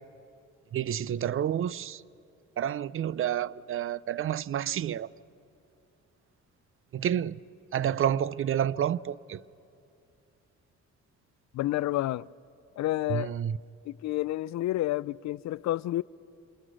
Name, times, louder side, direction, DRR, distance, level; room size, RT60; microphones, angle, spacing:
voice 1, 0.7-2.0 2.6-5.1 6.9-7.4 7.7-9.4 13.1-13.6, right 10 dB, 45° right, 0.5 m, -29 dB
voice 2, 11.5-12.3 12.8-13.3 13.9-16.0, left 15 dB, 65° left, 0.4 m, -29 dB
27.0 x 21.5 x 6.3 m
cardioid pair, 90°, 30 cm